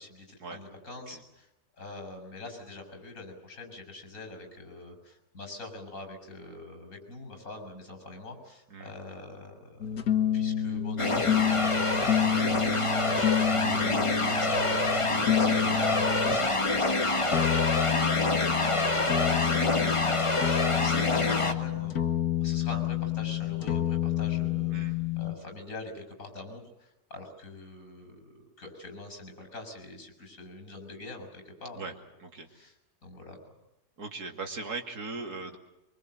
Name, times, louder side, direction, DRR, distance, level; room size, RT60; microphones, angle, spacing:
voice 1, 0.0-1.5 1.8-10.0 10.3-13.2 13.4-20.3 20.7-22.0 22.4-24.8 25.2-31.9 32.5-32.7 33.0-33.4, left 2 dB, 55° left, 5 dB, 6.8 m, -43 dB
sound 1, 9.8-16.5 17.3-25.3, left 9 dB, 75° left, 2.0 m, -29 dB
sound 2, 11.0-21.5, left 2 dB, 20° left, 1.4 m, -27 dB
voice 2, 13.0-13.5 17.9-18.1 24.7-25.0 31.8-31.9 32.2-32.5 34.0-35.6, right 3 dB, 80° right, 4 dB, 3.1 m, -39 dB
24.5 x 24.0 x 7.8 m, 0.93 s
omnidirectional pair, 1.6 m